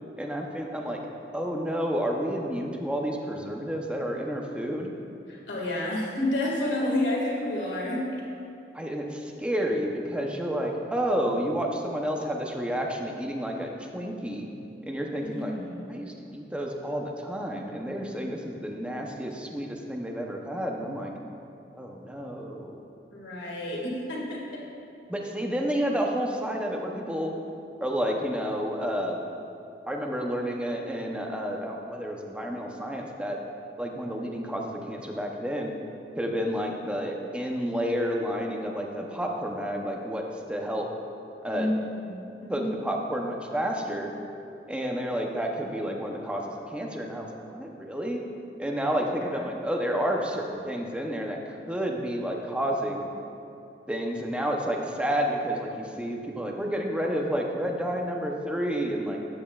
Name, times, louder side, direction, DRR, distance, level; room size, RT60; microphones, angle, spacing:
voice 1, 0.2-1.0 1.3-4.9 8.7-14.5 14.9-15.5 15.9-21.1 21.7-22.8 25.1-27.3 27.8-29.2 29.9-33.4 33.8-35.7 36.2-40.9 41.4-41.7 42.5-44.1 44.7-48.2 48.6-51.4 51.7-53.1 53.9-59.2, equal, 5° right, 1 dB, 0.7 m, -30 dB
voice 2, 5.3-8.0 15.3-15.9 23.1-24.6 41.5-42.8, left 1 dB, 90° left, -3 dB, 2.0 m, -30 dB
12.5 x 8.9 x 2.4 m, 2.7 s
head